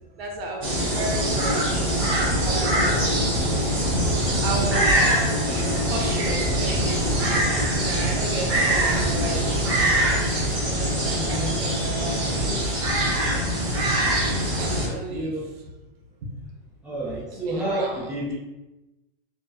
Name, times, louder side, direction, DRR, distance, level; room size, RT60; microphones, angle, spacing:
voice 1, 0.2-2.1 2.4-3.3 3.9-9.6 10.6-12.9 14.6-15.3 16.2-16.3 17.3-18.1, right 2 dB, 80° right, 0 dB, 0.7 m, -34 dB
sound 1, 0.6-14.9, right 1 dB, 30° right, 0.8 m, -23 dB
voice 2, 11.1-11.7 14.8-15.4 16.8-18.3, right 1 dB, 5° right, -13 dB, 0.9 m, -30 dB
2.9 x 2.0 x 2.2 m, 1.0 s
supercardioid pair, 170°, 29 cm